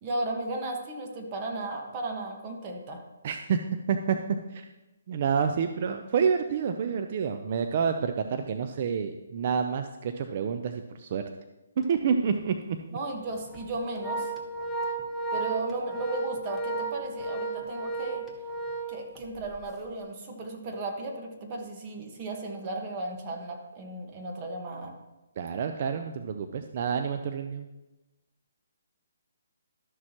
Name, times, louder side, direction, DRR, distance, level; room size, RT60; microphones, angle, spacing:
voice 1, 0.0-3.0 12.9-14.3 15.3-18.2 18.9-24.9, right 2 dB, 30° right, 2 dB, 1.4 m, -35 dB
voice 2, 3.2-3.6 3.9-4.2 4.5-4.6 5.1-11.2 11.8-12.8 25.4-27.7, right 6 dB, 45° right, 7 dB, 0.5 m, -28 dB
Organ, 11.8-12.0 12.4-12.5 13.3-19.6, right 3 dB, 5° left, 0.9 m, -34 dB
12.5 x 6.4 x 3.0 m, 1.0 s
hypercardioid pair, 155°, 0 cm